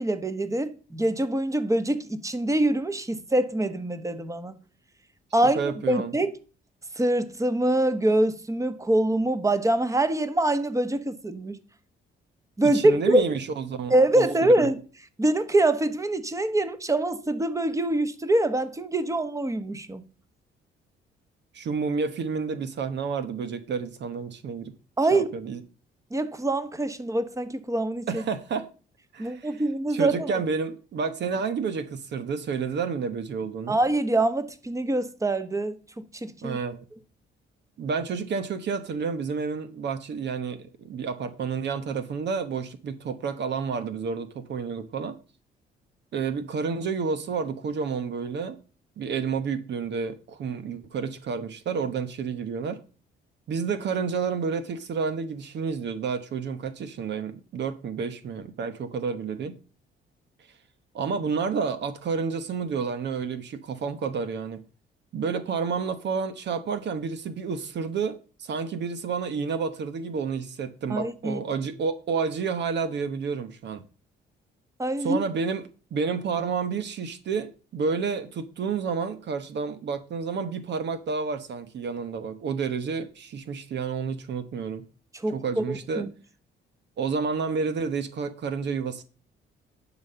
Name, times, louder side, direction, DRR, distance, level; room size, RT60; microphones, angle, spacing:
voice 1, 0.0-4.5 5.3-5.6 5.9-6.3 7.0-11.6 12.6-13.3 13.9-14.8 15.2-20.0 25.0-25.3 26.1-28.2 29.2-30.3 33.7-35.8 36.2-36.6 70.9-71.4 74.8-75.2 85.2-86.1, right 1 dB, 15° right, 1.1 m, -24 dB
voice 2, 5.4-6.1 12.6-14.7 21.5-24.7 25.1-25.6 28.1-28.7 29.1-29.6 29.9-33.8 36.4-36.8 37.8-45.2 46.1-48.6 49.0-52.8 53.5-59.6 60.9-64.6 65.1-73.9 75.0-75.6 75.9-84.8 85.3-86.0 87.0-89.0, right 5 dB, 60° right, 1.0 m, -30 dB
11.0 x 4.1 x 6.8 m
cardioid pair, 90°, 20 cm